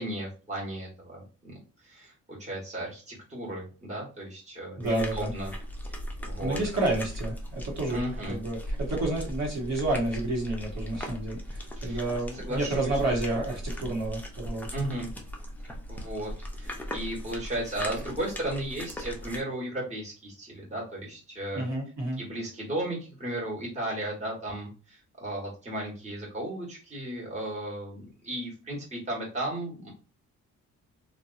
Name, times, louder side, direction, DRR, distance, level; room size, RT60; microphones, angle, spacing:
voice 1, 0.0-1.5 1.8-5.5 6.2-6.6 7.9-8.4 11.8-12.0 12.3-13.0 14.7-15.1 15.9-21.7 22.2-29.9, right 1 dB, 20° right, -5 dB, 1.4 m, -35 dB
sound 1, 4.8-19.4, equal, 5° left, 0.6 m, -38 dB
voice 2, 4.8-5.3 6.4-14.8 21.5-22.2, right 2 dB, 60° right, -3 dB, 1.4 m, -30 dB
2.9 x 2.6 x 2.5 m, 0.35 s
cardioid pair, 115°, 31 cm